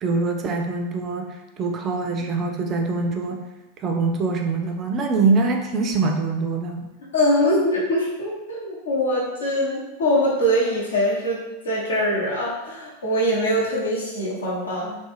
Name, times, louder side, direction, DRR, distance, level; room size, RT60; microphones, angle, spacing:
voice 1, 0.0-3.4 3.8-6.9, right 3 dB, 30° right, 2 dB, 0.3 m, -24 dB
voice 2, 7.1-15.0, equal, 65° left, -5 dB, 0.8 m, -23 dB
2.3 x 2.2 x 3.0 m, 1.0 s
figure-of-eight pair, 90°, 0 cm